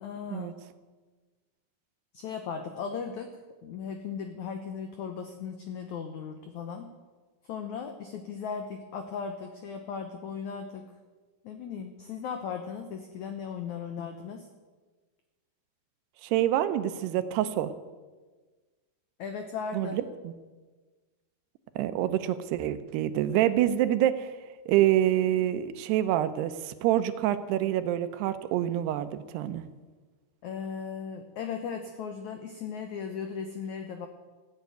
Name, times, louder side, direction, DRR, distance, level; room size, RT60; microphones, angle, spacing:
voice 1, 0.0-0.5 2.1-6.9 7.5-10.9 11.4-14.5 19.2-20.0 30.4-34.1, left 6 dB, 80° left, 6 dB, 1.6 m, -37 dB
voice 2, 16.2-17.7 19.7-20.3 21.8-24.4 24.7-29.6, right 12 dB, 80° right, 12 dB, 2.8 m, -26 dB
15.0 x 7.8 x 9.3 m, 1.3 s
omnidirectional pair, 4.8 m